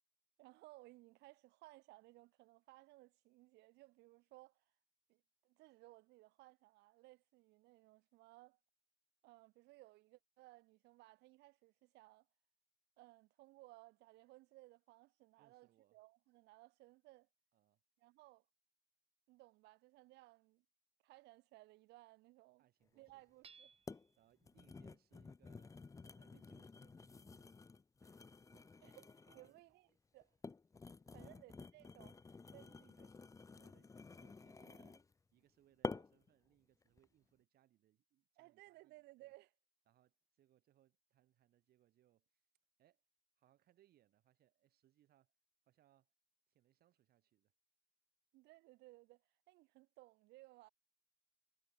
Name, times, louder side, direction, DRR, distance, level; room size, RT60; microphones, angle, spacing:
voice 1, 0.4-4.6 5.1-8.6 9.2-12.3 13.0-17.3 18.0-18.4 19.3-20.6 21.0-22.7 23.0-23.7 26.3-26.4 28.8-29.9 30.1-30.3 31.1-32.2 32.5-32.9 34.6-35.0 38.4-39.5 48.3-50.7, right 20 dB, 90° right, 6.2 m, -62 dB
voice 2, 15.4-16.0 17.5-17.8 22.6-23.2 24.2-27.5 28.0-29.0 29.3-29.6 31.0-31.3 32.5-35.0 35.3-39.3 39.9-42.3 42.8-43.0 43.4-45.3 45.7-46.1 46.5-47.5, right 13 dB, 65° right, 6.7 m, -74 dB
sound 1, 23.1-23.2 23.9-24.1 24.4-29.6 30.2-35.1 35.8-36.3 36.8-37.0, left 4 dB, 20° left, 0.8 m, -51 dB
Hammer / Chink clink, 23.4-24.2, right 6 dB, 35° right, 6.6 m, -62 dB
cardioid pair, 110°, 17 cm